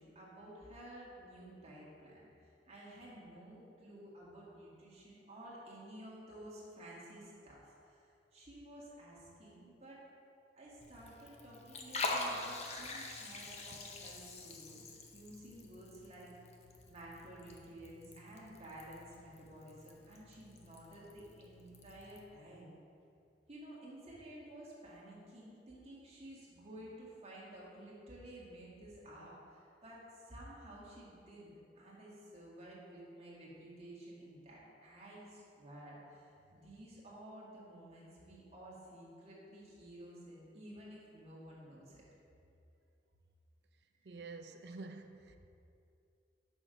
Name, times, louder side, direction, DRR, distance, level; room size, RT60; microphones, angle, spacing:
voice 1, 0.0-10.0 10.5-16.3 16.9-22.7 23.5-42.0 44.0-44.1 44.5-44.6, right 1 dB, 35° right, -6 dB, 1.8 m, -53 dB
Liquid, 10.8-22.2, left 2 dB, 40° left, 0.7 m, -45 dB
voice 2, 44.0-45.4, right 3 dB, 70° right, 6 dB, 0.5 m, -48 dB
6.2 x 6.1 x 5.1 m, 2.6 s
head